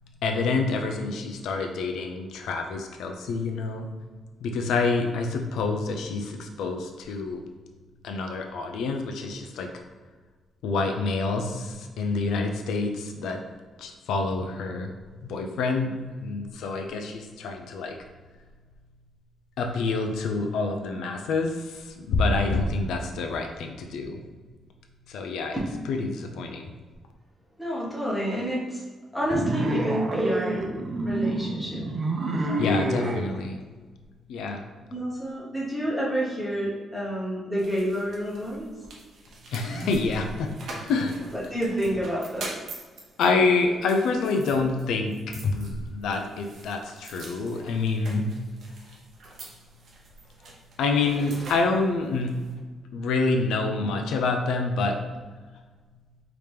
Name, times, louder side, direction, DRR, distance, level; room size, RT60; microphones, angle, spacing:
voice 1, 0.2-3.9 4.4-7.4 8.0-9.7 10.6-13.4 13.8-14.9 15.2-18.0 19.6-24.2 25.1-25.6 25.9-26.7 32.6-33.6 34.3-34.6 39.5-40.5 40.8-41.1 43.2-48.3 50.8-52.3 52.9-55.0, left 3 dB, 90° left, 4 dB, 0.5 m, -27 dB
voice 2, 27.6-28.8 29.1-30.7 31.0-31.9 32.3-33.1 34.9-38.7 41.3-42.5, equal, ahead, -6 dB, 1.1 m, -29 dB
sound 1, 29.3-33.3, right 2 dB, 30° right, 0.5 m, -27 dB
sound 2, 37.6-52.5, right 2 dB, 55° right, 0.9 m, -43 dB
4.9 x 2.9 x 3.4 m, 1.4 s
cardioid pair, 170°, 0 cm